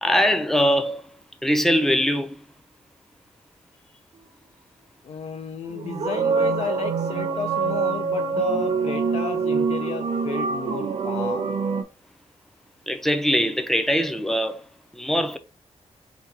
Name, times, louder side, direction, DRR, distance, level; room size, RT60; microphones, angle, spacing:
voice 1, 0.0-1.0 1.4-2.3 12.9-14.6 14.9-15.4, equal, 5° left, 0.5 m, -22 dB
voice 2, 5.0-11.5, left 6 dB, 65° left, 0.5 m, -32 dB
sound 1, 5.7-11.8, right 5 dB, 55° right, 0.6 m, -25 dB
3.8 x 2.3 x 4.1 m
wide cardioid pair, 130°, 11 cm